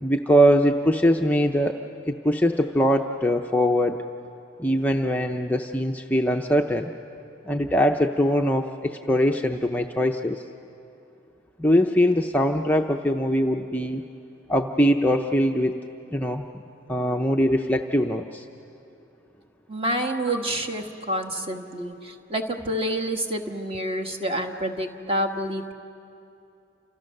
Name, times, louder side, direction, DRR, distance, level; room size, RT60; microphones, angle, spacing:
voice 1, 0.0-1.8 2.1-4.0 4.6-6.9 7.5-10.4 11.6-14.0 14.5-15.8 16.1-16.4 16.9-18.5 20.3-20.4, equal, 10° left, 3 dB, 0.6 m, -22 dB
voice 2, 19.7-25.7, right 1 dB, 30° right, 4 dB, 1.5 m, -28 dB
30.0 x 28.0 x 6.6 m, 2.7 s
head